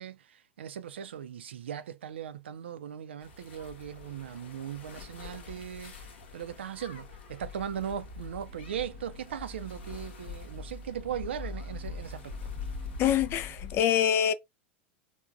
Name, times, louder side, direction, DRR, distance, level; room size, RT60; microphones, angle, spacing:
voice 1, 0.0-5.9 6.3-12.4, right 9 dB, 75° right, 0.4 m, -38 dB
sound 1, 3.2-13.8, left 5 dB, 70° left, 0.7 m, -44 dB
sound 2, 8.5-13.6, left 1 dB, 25° right, 0.7 m, -45 dB
voice 2, 13.0-14.3, left 10 dB, 40° left, 0.4 m, -25 dB
3.3 x 2.1 x 2.3 m
figure-of-eight pair, 85°, 6 cm